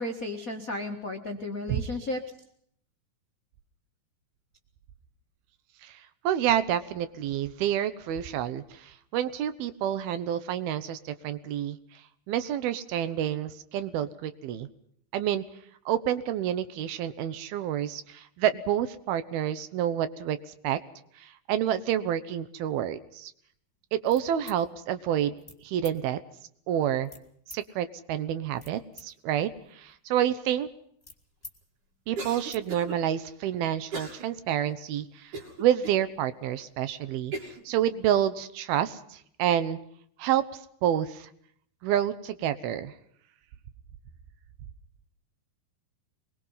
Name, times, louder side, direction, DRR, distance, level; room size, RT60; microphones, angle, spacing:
voice 1, 0.0-2.2, left 1 dB, 60° left, 2 dB, 0.8 m, -33 dB
voice 2, 5.8-11.8 12.3-14.7 15.1-15.4 15.9-20.4 20.6-20.8 21.2-23.3 23.9-25.3 25.6-26.2 26.7-27.1 27.5-30.7 32.1-35.3 35.6-39.8 40.2-40.4 40.8-41.3 41.8-42.9, right 10 dB, 75° right, 13 dB, 2.8 m, -28 dB
sound 1, 24.1-24.6 25.4-25.6 25.8-26.0 27.0-27.6 28.3-29.1 29.4-31.6 31.9-32.0 32.3-32.6, left 2 dB, 10° left, 1.1 m, -49 dB
Cough, 32.2-33.0 33.9-34.2 34.7-34.8 35.3-36.0 36.6-36.7 37.3-37.6, right 3 dB, 55° right, 4.2 m, -37 dB
25.0 x 21.5 x 5.6 m, 0.67 s
omnidirectional pair, 4.5 m